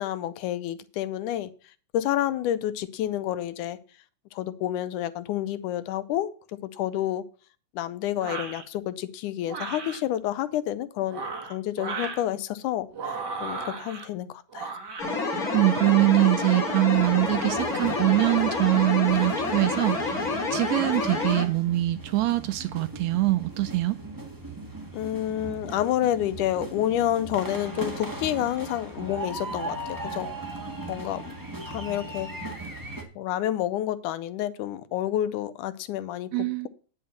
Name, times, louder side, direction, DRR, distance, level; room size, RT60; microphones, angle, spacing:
voice 1, 0.0-1.5 1.9-3.8 4.3-7.2 7.8-14.8 24.9-30.3 30.9-31.4 31.7-32.3 33.2-36.7, left 12 dB, 85° left, 2.2 m, -29 dB
sound 1, 8.2-8.6 9.4-10.0 11.0-12.2 12.9-14.0 14.5-15.1, right 4 dB, 40° right, 2.1 m, -35 dB
sound 2, 15.0-21.4, left 3 dB, 30° left, 2.4 m, -28 dB
voice 2, 15.5-24.0 36.3-36.7, right 18 dB, 80° right, 1.7 m, -23 dB
sound 3, 16.9-33.0, right 2 dB, 10° right, 0.9 m, -39 dB
9.5 x 5.7 x 7.0 m
omnidirectional pair, 3.6 m